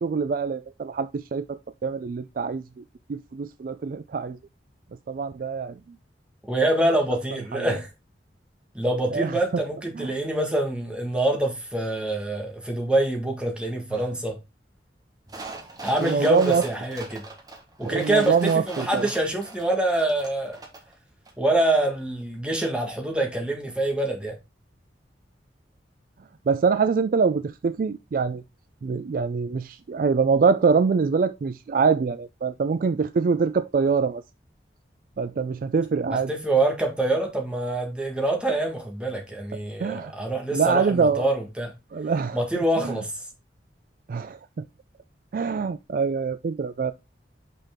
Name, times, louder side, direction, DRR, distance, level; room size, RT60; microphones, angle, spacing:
voice 1, 0.0-2.6 3.1-4.4 5.1-5.8 7.5-7.7 9.1-9.3 9.9-10.1 16.0-16.6 17.8-19.1 26.5-28.4 28.8-34.2 35.2-36.3 39.8-40.1 40.5-41.3 41.9-42.4 42.8-43.0 44.1-44.4 45.3-46.9, right 5 dB, 50° right, 0.3 m, -24 dB
voice 2, 6.5-7.9 8.7-14.4 15.8-17.2 17.8-20.6 21.4-24.4 36.1-41.7 42.3-43.1, right 1 dB, 5° right, 1.5 m, -25 dB
sound 1, 15.3-20.9 21.3-21.4, right 3 dB, 20° right, 1.3 m, -41 dB
5.6 x 5.6 x 3.6 m
head